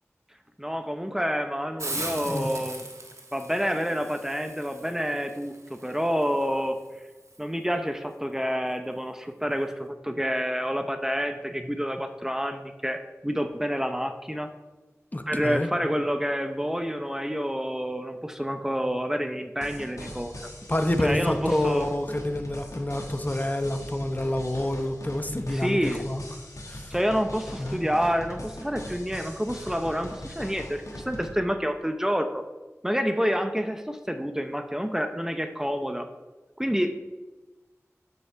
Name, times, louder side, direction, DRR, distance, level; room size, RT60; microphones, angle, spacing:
voice 1, 0.6-2.8 3.3-6.8 7.4-14.5 15.3-20.3 21.0-21.9 25.5-26.1 26.9-32.4 32.8-36.1 36.6-37.1, equal, 10° right, 7 dB, 0.7 m, -28 dB
Hiss, 1.8-7.4, right 2 dB, 70° right, 1.4 m, -40 dB
voice 2, 15.1-15.7 20.7-26.2 26.7-26.9 27.6-27.8, left 1 dB, 30° left, 7 dB, 0.9 m, -28 dB
sound 1, 19.6-31.3, left 1 dB, 85° left, 1.8 m, -41 dB
8.1 x 5.7 x 6.7 m, 1.1 s
wide cardioid pair, 50°, 5 cm